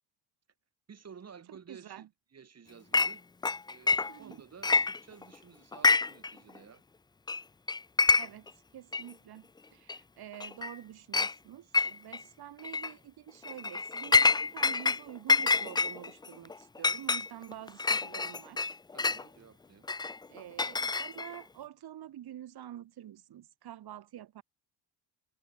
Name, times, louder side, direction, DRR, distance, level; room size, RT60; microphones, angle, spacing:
voice 1, 0.9-3.3 3.6-6.8 18.9-19.9, right 6 dB, 35° right, 4.5 m, -53 dB
voice 2, 1.5-2.1 4.1-4.4 8.2-18.7 20.3-24.4, right 11 dB, 60° right, 2.7 m, -47 dB
Chink clink, 2.9-3.1 3.4-4.3 4.6-5.3 5.7-6.3 6.6-6.7 7.3-7.4 7.7-8.5 8.9-9.0 9.9-10.0 10.4-10.8 11.1-11.3 11.7-12.2 12.6-12.9 13.4-15.0 15.3-19.2 19.9-21.4, left 4 dB, 10° left, 0.4 m, -27 dB
cardioid pair, 110°, 43 cm